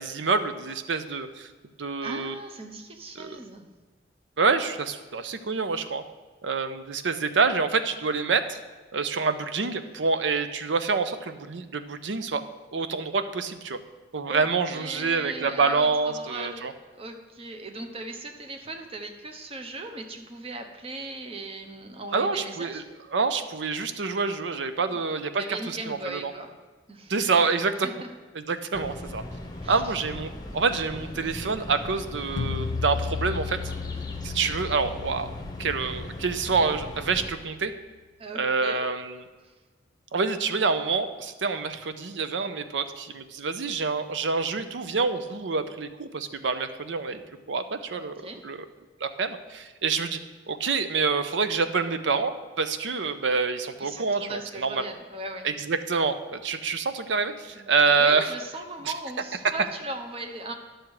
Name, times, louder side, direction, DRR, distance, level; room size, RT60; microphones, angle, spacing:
voice 1, 0.0-1.5 1.8-2.3 3.2-3.4 4.4-6.0 6.4-8.6 8.9-12.4 12.7-13.8 14.1-16.7 22.1-22.8 23.1-26.3 27.1-27.9 28.3-29.2 29.7-33.6 34.2-35.3 35.6-37.7 38.3-39.2 40.1-47.2 47.5-48.1 48.4-48.6 49.0-50.2 50.5-54.8 55.4-58.3, right 4 dB, 80° right, 10 dB, 0.6 m, -27 dB
voice 2, 2.0-3.7 14.3-22.8 24.9-25.0 25.4-26.5 26.9-27.1 27.8-28.1 29.6-30.0 38.2-38.9 39.4-39.5 48.0-48.4 53.8-55.5 57.6-60.5, right 2 dB, 30° right, 4 dB, 0.8 m, -38 dB
sound 1, 28.7-37.3, left 1 dB, 20° left, 0.9 m, -38 dB
sound 2, 32.4-37.4, left 5 dB, 70° left, 0.4 m, -35 dB
11.0 x 6.3 x 4.8 m, 1.3 s
head